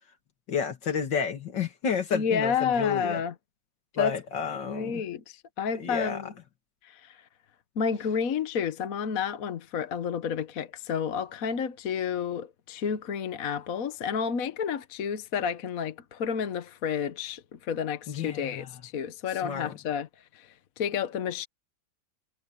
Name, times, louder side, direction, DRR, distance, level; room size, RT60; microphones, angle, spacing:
voice 1, 0.5-3.2 3.9-5.0 5.8-6.2 18.1-18.8 19.4-19.8, left 6 dB, 70° left, 2.7 m, -31 dB
voice 2, 2.1-3.3 4.0-4.2 4.6-6.3 6.8-7.2 7.8-20.1 20.3-21.5, left 7 dB, 55° left, 1.3 m, -30 dB
omnidirectional pair, 2.0 m